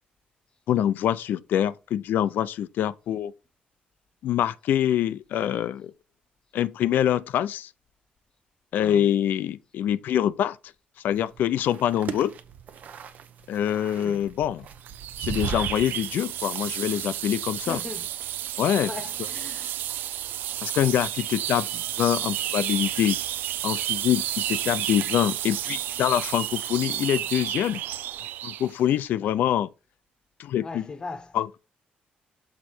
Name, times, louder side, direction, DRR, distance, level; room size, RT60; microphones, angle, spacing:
voice 1, 0.7-3.3 4.2-5.9 6.5-7.7 8.7-10.6 11.0-12.3 13.5-14.7 15.2-17.8 18.6-18.9 20.6-23.2 23.6-27.8 28.4-29.7 30.4-30.8 31.3-31.6, left 10 dB, 75° left, 0.4 m, -25 dB
voice 2, 8.7-9.1 13.9-14.2 17.7-18.1 18.8-19.8 29.2-29.3 30.6-31.4, left 3 dB, 25° left, 0.9 m, -39 dB
sound 1, 11.1-16.0, right 8 dB, 55° right, 0.6 m, -37 dB
sound 2, 14.9-28.7, right 12 dB, 85° right, 0.3 m, -31 dB
6.6 x 3.9 x 4.3 m
cardioid pair, 145°, 3 cm